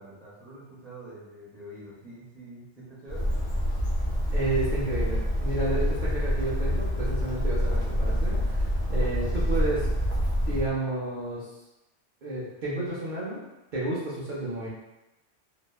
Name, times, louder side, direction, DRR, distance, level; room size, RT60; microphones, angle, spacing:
voice 1, 0.0-3.3, right 1 dB, ahead, -8 dB, 0.5 m, -45 dB
Bird, 3.1-10.7, equal, 50° left, 0.6 m, -27 dB
voice 2, 4.3-9.9 10.5-11.5 12.2-13.4 13.7-14.7, right 2 dB, 55° right, -8 dB, 0.6 m, -31 dB
2.8 x 2.1 x 2.2 m, 0.95 s
omnidirectional pair, 1.2 m